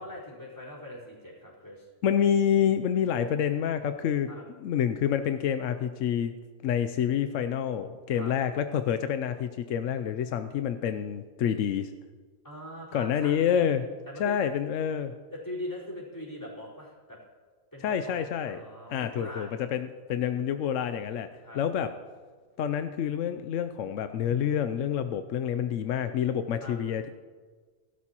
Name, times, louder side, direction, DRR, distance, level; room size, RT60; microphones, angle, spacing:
voice 1, 0.0-1.9 4.3-4.4 8.1-8.3 12.4-13.6 14.1-14.4 15.3-17.2 17.7-19.5 21.4-21.6 26.6-26.8, left 1 dB, 10° left, -7 dB, 4.3 m, -41 dB
voice 2, 2.0-4.3 4.6-6.3 6.6-11.9 12.9-13.8 14.2-15.1 17.8-18.6 18.9-21.3 21.6-21.9 22.6-27.1, left 8 dB, 70° left, 9 dB, 0.9 m, -28 dB
19.5 x 12.5 x 2.9 m, 1.5 s
omnidirectional pair, 1.5 m